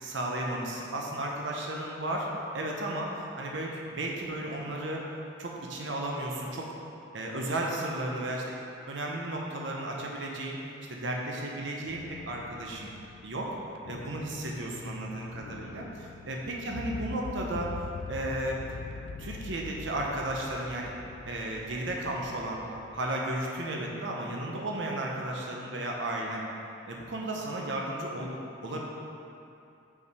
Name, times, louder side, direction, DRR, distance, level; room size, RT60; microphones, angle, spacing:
voice 1, 0.0-2.3 2.5-5.1 5.4-6.7 7.1-8.5 8.9-10.6 10.9-12.9 13.2-13.5 13.9-17.7 18.1-18.6 19.2-20.9 21.3-22.6 22.9-26.4 26.9-28.8, right 1 dB, 85° right, -1 dB, 0.8 m, -34 dB
sound 1, 11.8-23.1, left 4 dB, 80° left, 0.3 m, -43 dB
5.6 x 4.7 x 4.8 m, 2.6 s
head